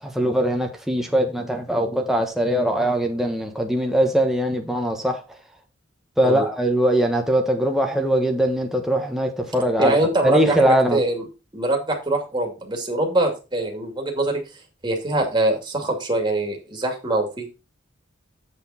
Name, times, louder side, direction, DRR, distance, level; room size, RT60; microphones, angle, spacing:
voice 1, 0.0-5.2 6.2-10.0 10.2-11.0, right 1 dB, ahead, 1.4 m, -21 dB
voice 2, 9.8-11.2 11.5-14.4 14.8-17.5, right 2 dB, 25° right, 2.5 m, -23 dB
7.8 x 7.0 x 4.3 m
head